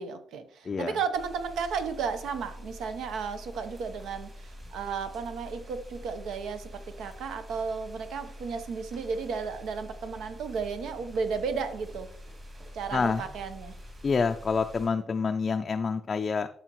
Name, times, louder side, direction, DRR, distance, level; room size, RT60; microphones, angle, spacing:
voice 1, 0.0-12.1 12.7-13.8, right 5 dB, 80° right, 9 dB, 0.9 m, -34 dB
voice 2, 0.6-1.0 12.9-13.3 14.0-16.5, left 5 dB, 30° left, 5 dB, 0.4 m, -27 dB
sound 1, 1.1-14.9, equal, 30° right, 2.8 m, -46 dB
12.5 x 5.8 x 3.0 m, 0.63 s
cardioid pair, 160°, 0 cm